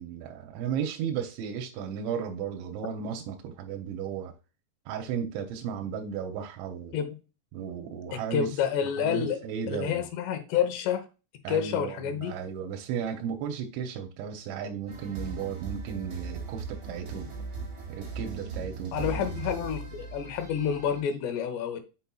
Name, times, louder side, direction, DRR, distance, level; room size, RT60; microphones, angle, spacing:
voice 1, 0.0-4.3 4.9-6.9 7.5-8.6 9.0-10.0 11.4-17.3 17.9-19.2, right 7 dB, 90° right, 3.1 m, -34 dB
voice 2, 8.1-9.4 9.7-11.1 11.5-12.3 18.9-21.8, left 8 dB, 75° left, 3.0 m, -29 dB
sound 1, 14.9-21.0, right 4 dB, 40° right, 3.3 m, -38 dB
7.0 x 5.9 x 2.3 m
omnidirectional pair, 5.2 m